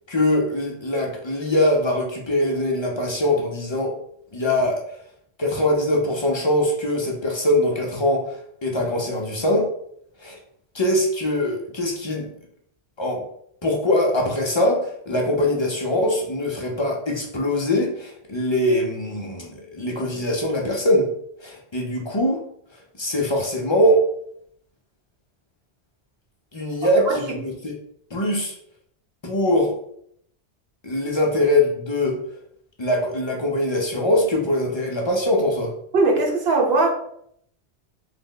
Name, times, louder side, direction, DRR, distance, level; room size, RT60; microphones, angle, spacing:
voice 1, 0.1-3.9 4.3-4.8 5.4-9.7 10.2-10.4 10.7-12.3 13.0-13.2 13.6-21.1 21.4-22.4 23.0-24.0 26.5-27.7 28.1-28.6 29.2-29.7 30.8-32.2 32.8-35.7, left 1 dB, 40° left, -1 dB, 0.4 m, -22 dB
voice 2, 35.9-36.9, right 3 dB, 65° right, 0 dB, 0.9 m, -19 dB
3.3 x 2.1 x 3.8 m, 0.69 s
omnidirectional pair, 1.2 m